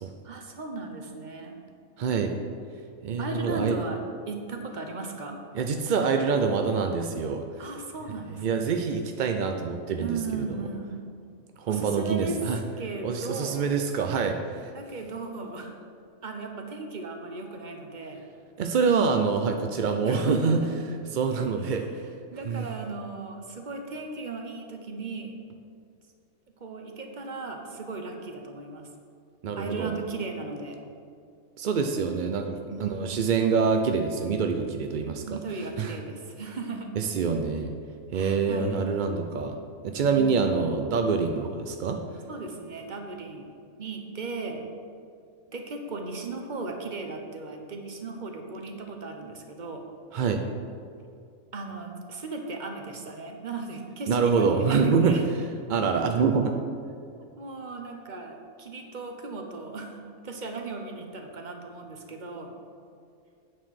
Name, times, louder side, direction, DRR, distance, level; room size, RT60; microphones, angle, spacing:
voice 1, 0.2-1.6 3.2-4.0 4.3-5.4 7.6-8.7 10.0-11.0 11.7-13.7 14.7-15.8 16.2-18.2 20.0-20.7 21.6-21.9 22.3-25.3 26.6-28.9 29.6-30.8 32.7-33.3 35.3-36.9 38.1-38.9 42.3-43.5 43.8-44.7 45.5-49.8 51.5-55.3 57.2-62.5, right 3 dB, 40° right, 3 dB, 1.0 m, -36 dB
voice 2, 2.0-2.3 3.0-3.8 5.5-7.4 8.4-10.7 11.6-12.6 13.0-14.7 18.6-20.6 21.1-21.8 22.5-22.7 29.4-29.9 31.6-35.2 35.8-35.9 37.0-37.7 38.1-39.6 39.8-42.0 50.1-50.4 54.1-55.2 55.7-56.5, right 5 dB, 65° right, 5 dB, 0.4 m, -25 dB
8.6 x 4.7 x 7.5 m, 2.3 s
omnidirectional pair, 1.4 m